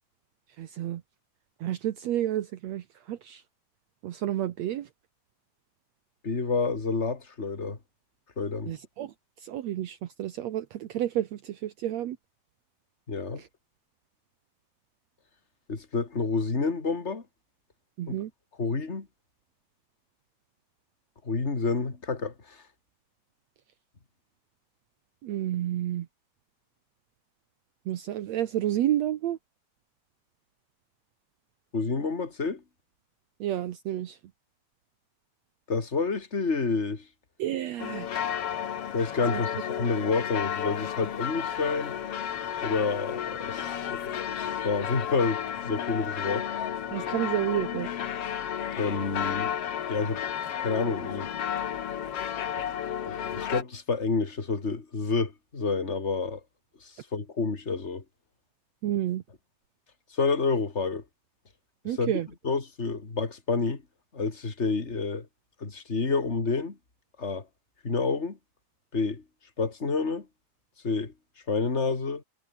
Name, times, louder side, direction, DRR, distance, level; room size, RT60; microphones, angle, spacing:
voice 1, 0.6-1.0 1.6-3.4 4.0-4.9 8.7-12.2 13.4-13.5 18.0-18.3 25.2-26.1 27.8-29.4 33.4-34.2 37.4-38.1 39.3-39.4 46.9-47.9 58.8-59.2 61.8-62.3, right 12 dB, 80° right, 1.5 m, -30 dB
voice 2, 6.2-7.8 8.4-8.7 13.1-13.4 15.7-17.2 18.1-18.2 18.6-19.1 21.2-22.6 31.7-32.6 35.7-37.1 38.9-41.9 42.6-46.5 48.8-49.5 49.9-50.2 50.6-51.3 53.1-56.4 56.8-58.0 60.1-61.0 62.0-62.1 62.4-63.8 64.1-65.3 65.6-66.8 67.2-67.5 67.8-68.4 68.9-69.2 69.6-70.3 70.8-71.1 71.5-72.2, left 4 dB, 20° left, 2.5 m, -29 dB
sound 1, 37.8-53.6, left 9 dB, 55° left, 1.8 m, -32 dB
omnidirectional pair, 4.7 m